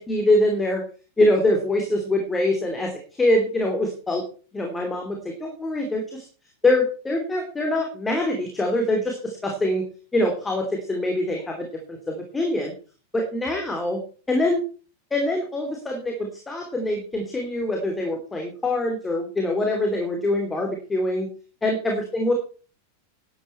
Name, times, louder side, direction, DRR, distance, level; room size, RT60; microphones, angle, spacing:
voice 1, 0.1-0.8 1.2-4.2 4.5-6.3 6.6-9.8 10.1-12.7 13.4-14.0 14.3-14.6 15.1-21.3 21.6-22.3, left 1 dB, 10° left, 2 dB, 2.9 m, -24 dB
12.0 x 9.9 x 4.5 m, 0.38 s
figure-of-eight pair, 90°, 0 cm